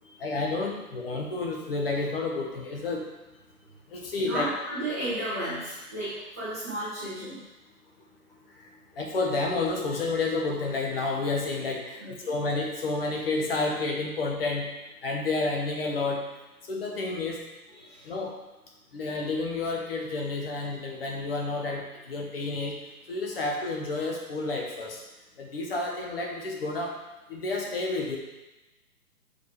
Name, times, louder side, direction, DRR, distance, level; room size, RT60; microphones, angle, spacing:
voice 1, 0.2-3.0 3.9-4.5 9.0-14.7 15.0-16.2 16.7-17.4 18.0-18.4 18.9-22.8 23.1-25.0 25.4-27.0 27.3-28.2, left 3 dB, 40° left, 0 dB, 1.1 m, -30 dB
voice 2, 4.2-7.4 12.0-12.3 17.8-18.1, right 1 dB, 10° right, -13 dB, 0.6 m, -33 dB
6.6 x 4.9 x 3.3 m, 1.0 s
hypercardioid pair, 160°, 45 cm